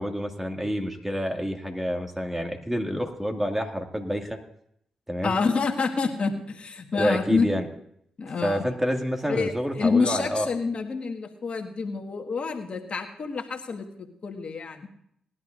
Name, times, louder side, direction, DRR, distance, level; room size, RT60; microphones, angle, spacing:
voice 1, 0.0-4.4 5.1-5.4 6.9-7.6 8.4-10.5, equal, 10° right, 3 dB, 2.2 m, -28 dB
voice 2, 5.2-7.5 8.2-8.7 9.3-14.9, left 4 dB, 55° left, 4 dB, 1.7 m, -27 dB
19.5 x 11.5 x 2.6 m, 0.70 s
supercardioid pair, 45°, 2 cm